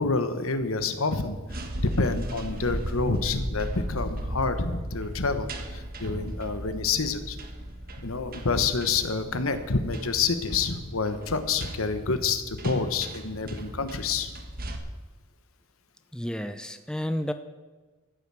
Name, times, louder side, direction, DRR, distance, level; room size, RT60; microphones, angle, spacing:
voice 1, 0.0-1.6 2.0-7.4 8.0-14.3, left 4 dB, 70° left, 9 dB, 1.2 m, -28 dB
sound 1, 1.4-14.8, right 1 dB, 45° right, 1.4 m, -37 dB
voice 2, 16.1-17.3, equal, 5° left, 9 dB, 0.5 m, -31 dB
14.0 x 9.1 x 7.7 m, 1.3 s
head